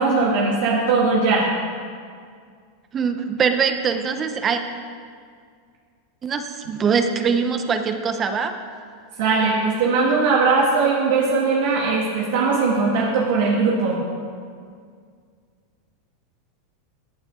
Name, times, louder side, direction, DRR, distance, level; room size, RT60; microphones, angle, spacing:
voice 1, 0.0-1.5 9.2-14.0, right 4 dB, 70° right, -4 dB, 1.9 m, -19 dB
voice 2, 2.9-4.6 6.2-8.5, right 6 dB, 30° right, 8 dB, 0.9 m, -22 dB
15.5 x 8.8 x 3.8 m, 2.1 s
hypercardioid pair, 110°, 0 cm